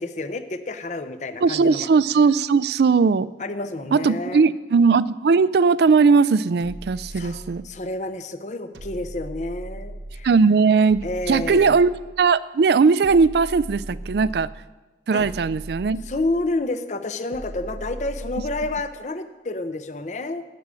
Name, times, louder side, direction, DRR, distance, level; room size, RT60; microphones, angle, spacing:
voice 1, 0.0-1.9 3.4-4.5 7.1-10.3 11.0-11.8 15.1-15.3 16.0-20.4, left 2 dB, 40° left, 10 dB, 0.6 m, -29 dB
voice 2, 1.4-3.3 3.9-7.6 10.2-11.9 12.2-14.5 15.1-16.0, right 5 dB, 65° right, 18 dB, 0.4 m, -18 dB
sound 1, 6.6-7.9 8.7-10.4 10.9-12.3 13.0-14.6 15.2-16.6 17.3-18.9, right 1 dB, 80° right, 0.9 m, -38 dB
12.0 x 6.2 x 8.4 m, 1.2 s
head